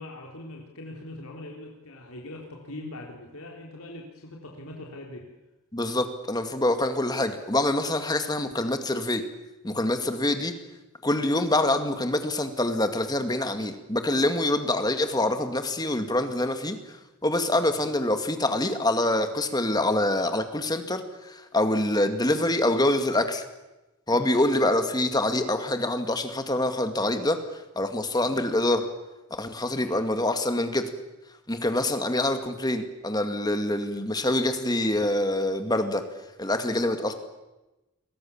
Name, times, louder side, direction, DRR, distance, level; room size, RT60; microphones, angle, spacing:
voice 1, 0.0-5.3 17.7-17.9 24.3-24.6 29.8-30.0, left 1 dB, 75° left, 0 dB, 3.8 m, -42 dB
voice 2, 5.7-9.2 9.6-10.5 11.0-17.0 17.2-23.4 24.1-28.9 29.3-30.9 31.5-36.0 36.4-37.1, left 1 dB, 15° left, 8 dB, 2.1 m, -25 dB
29.0 x 23.0 x 7.3 m, 1.0 s
head